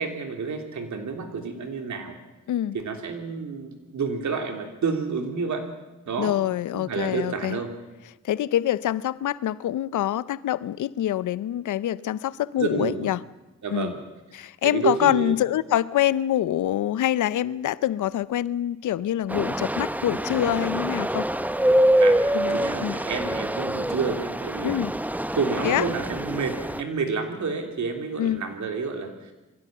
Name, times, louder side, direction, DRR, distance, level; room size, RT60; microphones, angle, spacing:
voice 1, 0.0-2.2 2.7-5.6 6.0-6.4 6.7-7.7 12.6-13.1 13.6-14.0 14.6-15.3 22.0-22.2 22.5-24.8 25.3-29.3, right 5 dB, 70° right, 5 dB, 3.2 m, -29 dB
voice 2, 6.2-7.6 8.2-13.2 13.7-13.9 14.3-21.3 22.3-23.0 24.6-24.9 25.6-25.9 28.2-28.4, left 12 dB, 85° left, 19 dB, 0.6 m, -25 dB
sound 1, 19.3-26.8, right 1 dB, 5° right, 0.8 m, -25 dB
23.0 x 16.5 x 7.6 m, 1.0 s
cardioid pair, 60°, 30 cm